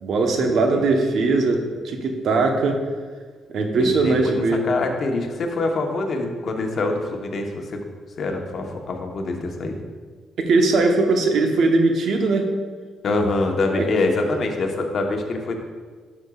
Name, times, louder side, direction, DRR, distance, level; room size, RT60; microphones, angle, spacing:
voice 1, 0.0-2.8 3.5-4.6 10.4-12.5 13.8-13.9, right 3 dB, 65° right, 3 dB, 0.9 m, -20 dB
voice 2, 3.8-7.8 8.2-9.7 13.0-15.6, left 2 dB, 55° left, 2 dB, 1.0 m, -25 dB
10.5 x 6.1 x 2.4 m, 1.5 s
cardioid pair, 90°, 0 cm